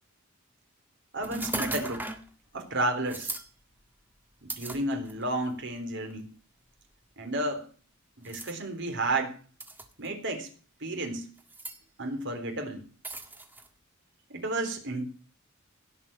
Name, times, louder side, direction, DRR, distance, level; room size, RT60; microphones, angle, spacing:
voice 1, 1.1-2.1 2.5-3.3 4.4-6.3 7.2-7.7 8.2-9.4 10.0-10.5 10.8-11.3 12.0-12.8 14.3-15.0, right 2 dB, 60° right, 6 dB, 3.6 m, -32 dB
sound 1, 1.2-2.3 3.1-3.5 4.5-5.3 6.1-6.2 8.3-8.5 9.6-10.1 11.4-11.8 13.0-13.7, right 2 dB, 10° right, 1.6 m, -36 dB
17.5 x 6.2 x 8.8 m, 0.38 s
head